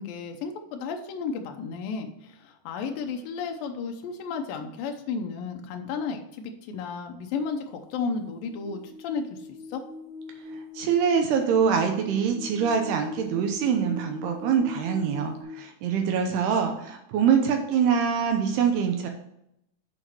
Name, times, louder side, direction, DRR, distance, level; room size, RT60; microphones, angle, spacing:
voice 1, 0.0-9.8 16.0-16.4, left 5 dB, 85° left, 4 dB, 2.0 m, -33 dB
sound 1, 7.4-15.4, left 3 dB, 5° right, 2.2 m, -42 dB
voice 2, 10.8-19.1, right 7 dB, 75° right, 4 dB, 2.7 m, -24 dB
8.0 x 4.7 x 6.0 m, 0.77 s
omnidirectional pair, 5.1 m